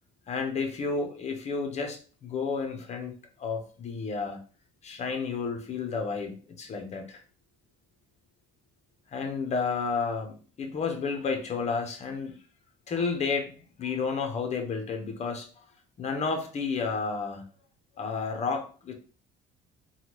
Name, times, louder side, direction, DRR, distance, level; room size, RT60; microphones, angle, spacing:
voice 1, 0.3-3.1 3.4-4.4 4.8-7.2 9.1-12.3 12.9-13.5 13.8-15.5 16.0-17.4 18.0-18.9, left 5 dB, 40° left, 5 dB, 0.8 m, -31 dB
3.4 x 2.3 x 3.0 m, 0.38 s
cardioid pair, 110°, 17 cm